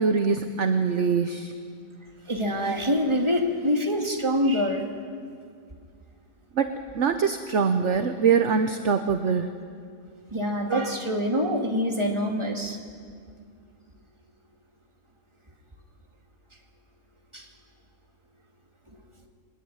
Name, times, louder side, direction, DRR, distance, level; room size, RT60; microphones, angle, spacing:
voice 1, 0.0-1.5 6.6-9.5, right 5 dB, 50° right, 8 dB, 1.1 m, -23 dB
voice 2, 2.3-4.8 10.3-12.8 17.3-17.5, equal, 15° right, 1 dB, 2.4 m, -25 dB
23.0 x 21.0 x 9.0 m, 2.2 s
omnidirectional pair, 1.9 m